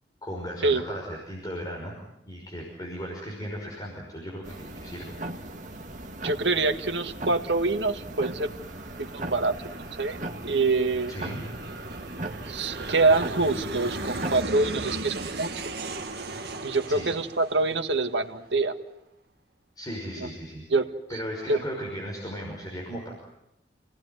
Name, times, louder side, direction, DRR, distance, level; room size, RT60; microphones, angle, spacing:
voice 1, 0.2-1.9 2.3-5.2 11.1-11.4 16.9-17.1 19.8-20.7 21.1-23.1, equal, 20° left, -2 dB, 5.6 m, -36 dB
sound 1, 4.4-14.4, right 1 dB, 40° right, 1.9 m, -38 dB
Aircraft, 5.4-18.6, right 2 dB, 60° right, 1.8 m, -38 dB
voice 2, 6.2-8.5 9.0-11.1 12.5-15.7 16.6-18.7 20.2-20.3 20.7-20.9 21.5-21.6, right 3 dB, 75° right, 6 dB, 1.8 m, -25 dB
28.5 x 19.0 x 9.5 m, 0.85 s
head